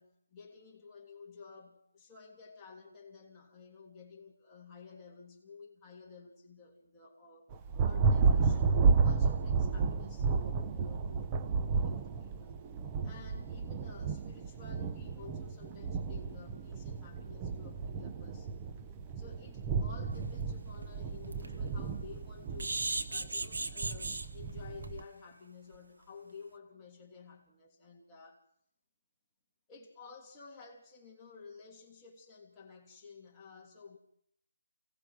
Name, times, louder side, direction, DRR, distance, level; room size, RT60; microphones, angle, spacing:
voice 1, 0.0-7.5 7.8-8.7 9.0-12.6 13.0-18.7 19.2-22.8 23.1-28.4 29.7-34.0, left 5 dB, 10° left, -3 dB, 3.1 m, -52 dB
Thunder, 7.5-25.0, right 5 dB, 15° right, 0.8 m, -32 dB
sound 1, 20.3-20.4 20.8-20.9 21.3-21.5 22.6-24.3 24.8-25.0 25.3-25.4 25.7-25.8, right 2 dB, 90° right, 2.3 m, -35 dB
29.5 x 18.5 x 6.4 m, 0.70 s
hypercardioid pair, 170°, 0 cm